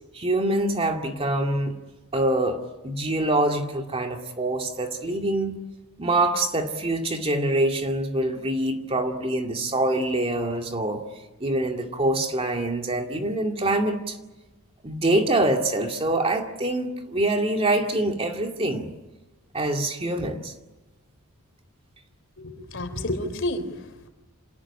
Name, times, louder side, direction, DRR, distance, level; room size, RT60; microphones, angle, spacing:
voice 1, 0.1-1.7 2.1-5.6 6.0-11.0 11.4-14.2 14.8-18.9 19.5-20.5, right 1 dB, 25° right, 4 dB, 2.3 m, -25 dB
voice 2, 22.4-24.1, left 1 dB, 60° left, 8 dB, 3.6 m, -30 dB
27.5 x 19.0 x 10.0 m, 1.1 s
head